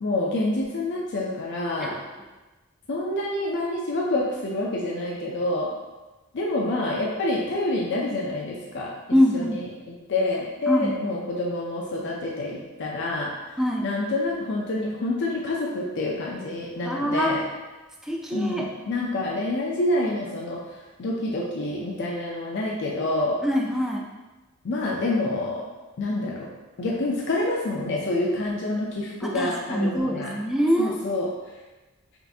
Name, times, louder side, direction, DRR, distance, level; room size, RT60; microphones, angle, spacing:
voice 1, 0.0-2.0 2.9-5.7 6.3-8.9 9.3-13.3 13.8-17.4 18.3-20.6 21.0-23.4 24.6-25.6 26.0-26.5 26.8-30.3 30.8-31.3, left 2 dB, 55° left, -2 dB, 0.5 m, -27 dB
voice 2, 9.1-9.6 10.7-11.0 13.6-13.9 16.9-17.3 18.0-18.7 23.4-24.0 29.2-31.0, equal, ahead, -1 dB, 0.3 m, -24 dB
5.3 x 2.5 x 2.6 m, 1.2 s
head